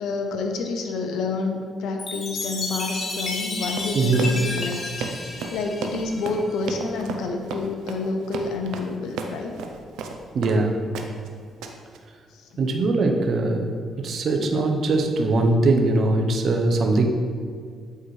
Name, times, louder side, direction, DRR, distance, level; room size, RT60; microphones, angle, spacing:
voice 1, 0.0-4.9 5.2-9.5 12.3-12.5, left 3 dB, 80° left, 4 dB, 0.6 m, -29 dB
Chime, 2.0-6.6, left 3 dB, 45° left, 1.0 m, -32 dB
Run, 3.7-10.6 10.9-11.3 11.6-12.0, right 4 dB, 90° right, 0.5 m, -34 dB
voice 2, 3.9-4.3 10.3-10.8 12.6-17.1, right 2 dB, 60° right, 3 dB, 0.8 m, -21 dB
8.7 x 4.7 x 3.2 m, 2.1 s
cardioid pair, 90°, 0 cm